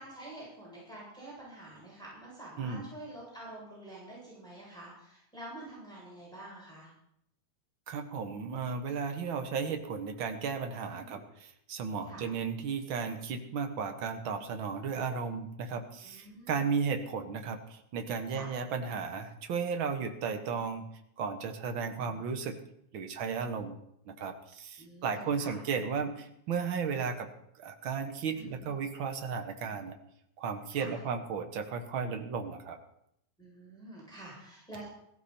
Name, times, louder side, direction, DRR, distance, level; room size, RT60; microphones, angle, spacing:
voice 1, 0.0-6.9 10.8-11.2 12.1-12.3 16.0-16.7 18.3-18.5 22.0-22.4 24.8-25.5 28.3-28.7 30.7-31.0 33.4-34.9, right 1 dB, ahead, -6 dB, 7.6 m, -48 dB
voice 2, 2.6-2.9 7.9-20.8 21.2-22.6 22.9-23.8 24.1-27.3 27.6-29.9 30.4-32.8, right 5 dB, 70° right, 6 dB, 1.2 m, -34 dB
17.0 x 16.0 x 4.4 m, 0.75 s
omnidirectional pair, 4.2 m